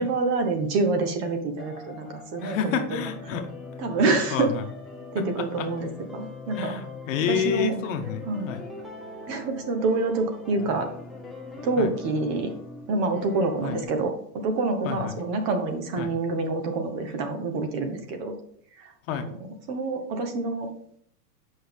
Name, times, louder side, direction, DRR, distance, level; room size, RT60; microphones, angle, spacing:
voice 1, 0.0-3.1 3.8-4.5 5.1-6.8 7.3-7.7 8.3-8.5 9.3-10.9 11.6-12.5 12.9-14.1 14.4-18.3 18.8-19.4 19.7-20.7, right 3 dB, 35° right, 6 dB, 1.1 m, -27 dB
sound 1, 1.6-13.8, left 3 dB, ahead, 0.6 m, -41 dB
voice 2, 2.4-3.4 4.1-4.6 5.1-5.7 6.5-8.6 11.8-11.9 13.6-13.8 14.8-15.1 16.0-16.1 19.1-19.3, left 7 dB, 55° left, 6 dB, 1.2 m, -29 dB
7.8 x 5.5 x 3.5 m, 0.64 s
supercardioid pair, 150°, 47 cm